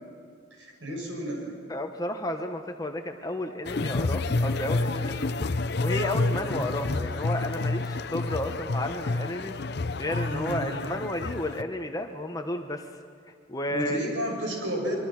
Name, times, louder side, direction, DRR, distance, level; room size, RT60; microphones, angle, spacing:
voice 1, 0.6-1.6 6.3-6.6 10.3-10.7 13.7-14.9, right 1 dB, 70° right, 0 dB, 7.0 m, -32 dB
voice 2, 1.7-5.5 5.8-9.6 10.0-12.9 13.5-14.0, left 1 dB, 20° left, 5 dB, 1.1 m, -32 dB
sound 1, 3.6-11.6, left 3 dB, 55° left, 0.6 m, -29 dB
25.5 x 24.0 x 6.0 m, 2.2 s
head